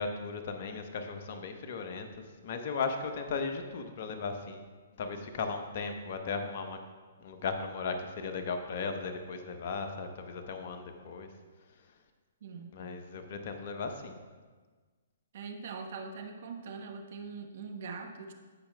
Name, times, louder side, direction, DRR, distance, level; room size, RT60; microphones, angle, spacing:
voice 1, 0.0-4.6 5.0-6.8 7.2-11.3 12.7-14.2, left 4 dB, 50° left, 6 dB, 0.8 m, -36 dB
voice 2, 12.4-12.8 15.3-18.3, right 5 dB, 55° right, 4 dB, 1.1 m, -42 dB
16.5 x 5.7 x 2.2 m, 1.4 s
figure-of-eight pair, 125°, 0 cm